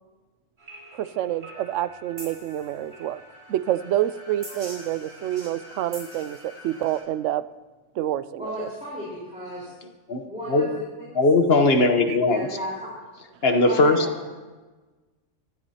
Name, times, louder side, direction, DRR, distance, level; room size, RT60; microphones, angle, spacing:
sound 1, 0.6-7.0, equal, 50° right, 5.2 m, -44 dB
voice 1, 0.9-3.2 3.5-7.5 8.0-8.7 12.1-12.2, right 12 dB, 70° right, 15 dB, 0.9 m, -28 dB
voice 2, 8.4-9.7 10.2-10.7 12.3-12.9 13.7-14.1, equal, 5° right, -7 dB, 4.1 m, -34 dB
voice 3, 11.1-12.5 13.4-14.0, left 2 dB, 50° left, 6 dB, 1.2 m, -19 dB
25.5 x 12.5 x 2.8 m, 1.2 s
omnidirectional pair, 1.4 m